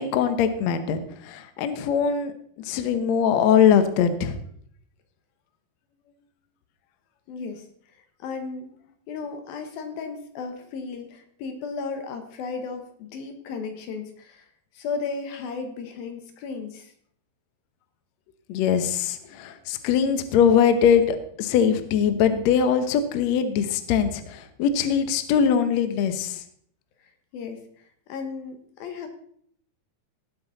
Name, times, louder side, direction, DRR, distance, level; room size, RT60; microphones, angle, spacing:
voice 1, 0.0-2.3 2.6-4.4 18.5-26.4, left 7 dB, 90° left, 10 dB, 1.5 m, -22 dB
voice 2, 7.3-7.7 8.2-8.7 9.1-14.5 14.7-16.9 27.3-27.6 28.1-29.1, left 5 dB, 70° left, 6 dB, 2.8 m, -34 dB
18.0 x 8.1 x 4.1 m, 0.63 s
omnidirectional pair, 4.7 m